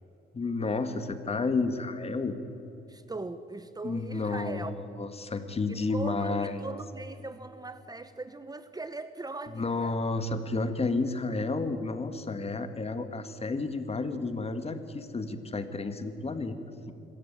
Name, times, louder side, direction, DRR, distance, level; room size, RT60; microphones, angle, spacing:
voice 1, 0.3-2.3 3.8-4.7 5.0-6.5 9.5-16.6, left 3 dB, 30° left, 9 dB, 1.9 m, -31 dB
voice 2, 2.9-4.7 5.7-10.0, right 2 dB, 20° right, 12 dB, 0.9 m, -40 dB
25.5 x 14.0 x 8.9 m, 3.0 s
cardioid pair, 90°, 20 cm